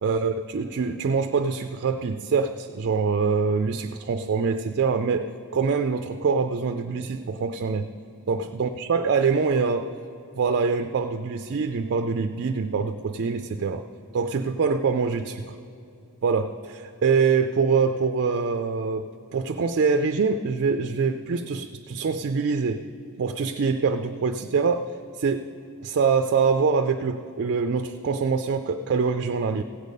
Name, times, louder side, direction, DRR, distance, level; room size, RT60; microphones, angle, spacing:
voice 1, 0.0-7.9 8.3-9.9 10.3-13.8 14.1-15.6 16.2-19.0 19.3-22.8 23.2-24.9 25.2-25.5 25.8-29.6, right 5 dB, 50° right, 7 dB, 0.4 m, -24 dB
16.0 x 8.2 x 5.3 m, 2.7 s
head